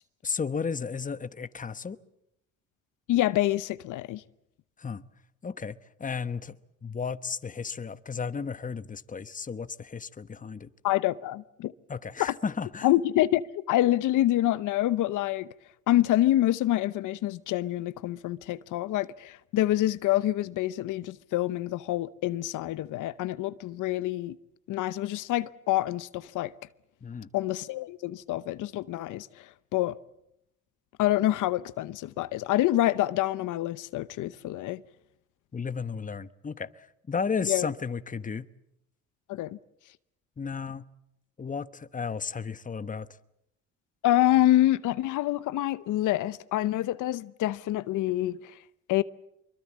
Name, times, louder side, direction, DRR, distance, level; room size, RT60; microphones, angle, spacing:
voice 1, 0.2-2.0 4.8-5.0 5.4-6.6 6.8-10.7 11.9-12.9 27.0-27.3 35.5-38.5 40.4-40.9 41.4-43.1, left 5 dB, 25° left, 1.1 m, -34 dB
voice 2, 3.1-4.2 10.8-11.7 12.2-12.3 12.8-15.5 15.9-24.4 24.7-26.5 27.3-30.0 31.0-34.8 37.5-37.7 39.3-39.6 44.0-48.6 48.9-49.0, left 14 dB, 85° left, 0.8 m, -26 dB
25.5 x 23.0 x 7.4 m
cardioid pair, 90°, 30 cm